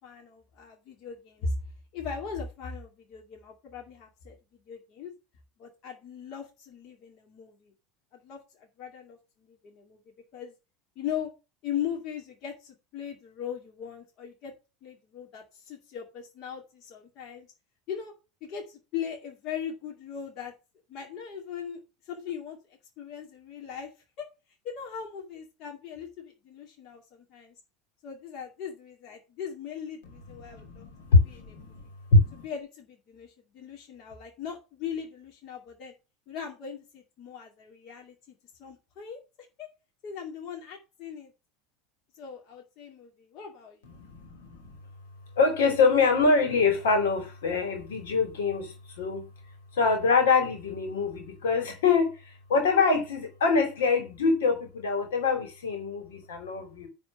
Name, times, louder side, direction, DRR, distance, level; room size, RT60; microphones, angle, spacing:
voice 1, 0.0-1.5 1.9-5.1 5.6-7.7 8.1-10.0 10.3-10.5 11.0-11.3 11.6-14.5 14.8-17.5 17.9-18.1 18.4-20.5 20.9-21.8 22.0-23.9 24.2-24.3 24.6-27.5 28.0-30.9 31.2-31.8 32.3-35.9 36.3-39.2 39.6-39.7 40.0-41.3 42.1-43.8, left 7 dB, 50° left, 2.5 m, -39 dB
voice 2, 30.5-31.8 32.1-32.4 43.8-44.7 45.4-49.3 49.7-56.9, left 4 dB, 70° left, 3.0 m, -25 dB
10.0 x 3.9 x 7.2 m
figure-of-eight pair, 75°, 0 cm